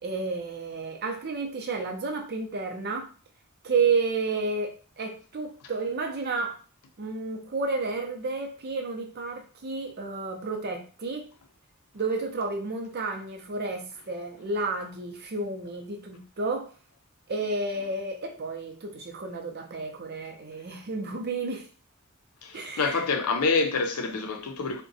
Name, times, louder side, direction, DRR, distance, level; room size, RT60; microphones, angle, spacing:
voice 1, 0.0-3.1 3.6-6.6 7.0-11.3 11.9-16.7 17.3-21.7 22.5-23.0, right 3 dB, 45° right, 0.6 m, -31 dB
voice 2, 22.4-24.8, left 4 dB, 85° left, 0.5 m, -27 dB
3.7 x 2.2 x 2.6 m
head